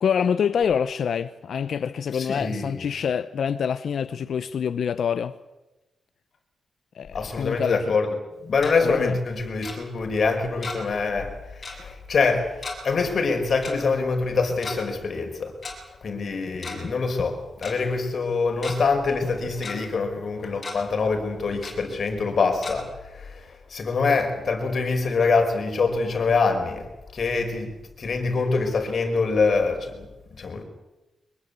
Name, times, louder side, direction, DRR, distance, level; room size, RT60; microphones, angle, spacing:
voice 1, 0.0-5.3 6.9-7.8 8.8-9.1, left 7 dB, 65° left, 0.8 m, -26 dB
voice 2, 2.1-2.8 7.1-8.1 8.5-15.5 16.0-27.7 28.0-30.6, left 4 dB, 50° left, 5.1 m, -25 dB
Tick-tock, 8.3-8.7 9.6-9.7 10.6-11.0 11.2-11.3 11.6-11.8 12.6-12.8 13.6-13.7 14.5-14.8 15.6-15.7 16.5-16.9 17.2-17.3 17.6-17.7 18.3-18.7 19.2-19.7 20.2-20.3 20.6-20.8 21.6-21.7 22.6-22.7, left 4 dB, 30° left, 7.5 m, -35 dB
24.0 x 21.5 x 8.2 m
wide cardioid pair, 130°, 0 cm